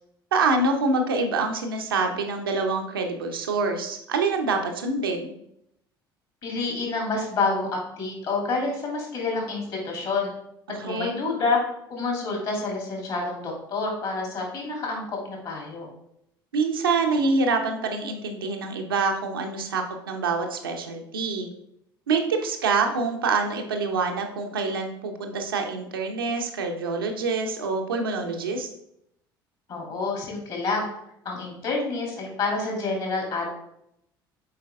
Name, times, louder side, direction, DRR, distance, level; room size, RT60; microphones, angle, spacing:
voice 1, 0.3-5.3 10.7-11.2 16.5-21.5 22.1-28.7, right 4 dB, 75° right, 3 dB, 0.8 m, -26 dB
voice 2, 6.4-7.7 8.0-10.3 10.8-11.6 11.9-15.9 29.7-30.9 31.2-33.5, left 3 dB, 45° left, -1 dB, 2.8 m, -28 dB
7.7 x 4.6 x 3.5 m, 0.77 s
figure-of-eight pair, 60°, 12 cm